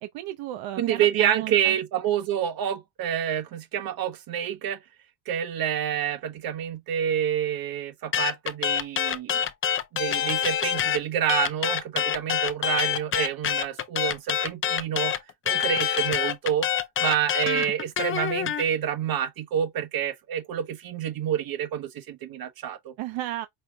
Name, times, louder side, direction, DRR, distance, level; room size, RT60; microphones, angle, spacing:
voice 1, 0.0-1.8 23.0-23.5, right 14 dB, 70° right, 0.7 m, -34 dB
voice 2, 0.8-4.8 5.3-9.4 9.9-15.1 15.4-16.7 17.0-22.9, right 9 dB, 50° right, 1.3 m, -28 dB
sound 1, 8.1-11.0 11.3-18.6, left 9 dB, 25° left, 0.5 m, -26 dB
5.7 x 2.0 x 3.5 m
cardioid pair, 125°, 47 cm